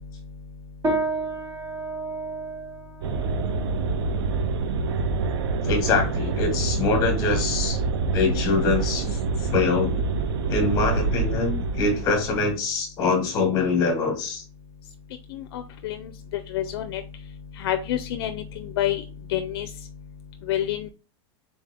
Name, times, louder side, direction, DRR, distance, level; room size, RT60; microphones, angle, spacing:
sound 1, 0.8-10.5, right 2 dB, 25° right, 0.9 m, -34 dB
sound 2, 3.0-12.6, right 4 dB, 70° right, 0.6 m, -26 dB
voice 1, 5.6-7.8 8.1-9.1 9.5-10.0 10.5-14.4, left 4 dB, 25° left, 5 dB, 1.3 m, -24 dB
voice 2, 15.3-16.1 16.5-17.0 17.6-19.0 19.3-19.7 20.5-20.9, left 11 dB, 60° left, 7 dB, 0.5 m, -28 dB
3.9 x 3.6 x 3.4 m, 0.34 s
supercardioid pair, 175°, 14 cm